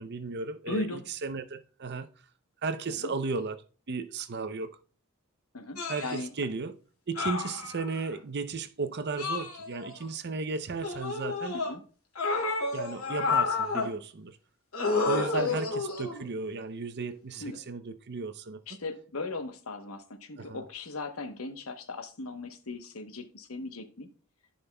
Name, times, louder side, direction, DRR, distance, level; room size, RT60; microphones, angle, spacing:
voice 1, 0.0-2.1 2.6-4.7 5.9-6.7 7.1-11.5 12.7-14.4 15.1-15.7 16.0-18.8 20.4-20.6, right 4 dB, 50° right, 0.6 m, -35 dB
voice 2, 0.7-1.0 3.0-3.1 5.5-6.3 11.5-11.8 15.3-15.6 17.4-17.5 18.7-24.1, left 2 dB, 70° left, 1.0 m, -37 dB
sound 1, 5.8-6.2 7.2-8.1 9.2-10.0 10.8-11.7 12.1-13.9 14.7-16.2 17.4-17.5, left 4 dB, 85° left, 2.4 m, -30 dB
14.5 x 5.2 x 2.3 m
head